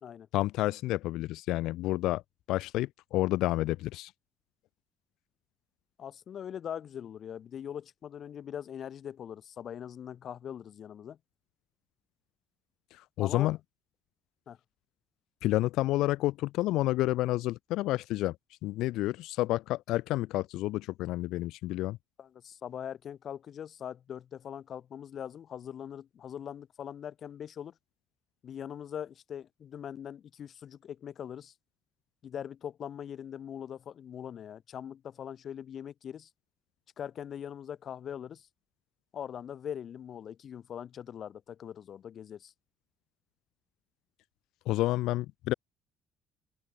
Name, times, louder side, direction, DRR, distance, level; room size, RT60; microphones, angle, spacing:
voice 1, 0.3-2.2 2.5-4.1 12.9-13.6 15.4-18.4 18.6-22.0 44.7-45.5, left 17 dB, 85° left, 0.6 m, -29 dB
voice 2, 6.0-11.2 13.2-13.5 14.5-14.6 22.2-27.7 28.4-31.5 32.2-36.3 37.0-38.5 39.1-42.5, left 9 dB, 45° left, 0.9 m, -41 dB
open air
cardioid pair, 135°, 0 cm